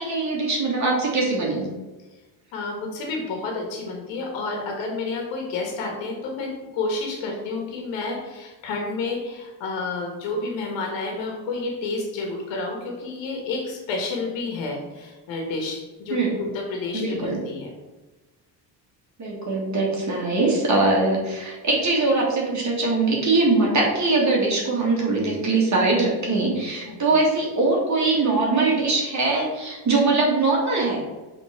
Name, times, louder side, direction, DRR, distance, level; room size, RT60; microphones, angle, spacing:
voice 1, 0.0-1.7 16.1-16.4 16.9-17.4 19.2-31.0, right 3 dB, 40° right, -3 dB, 2.0 m, -22 dB
voice 2, 2.5-17.7 26.8-27.0, left 3 dB, 85° left, 1 dB, 1.5 m, -30 dB
5.8 x 3.9 x 4.4 m, 1.1 s
cardioid pair, 100°, 43 cm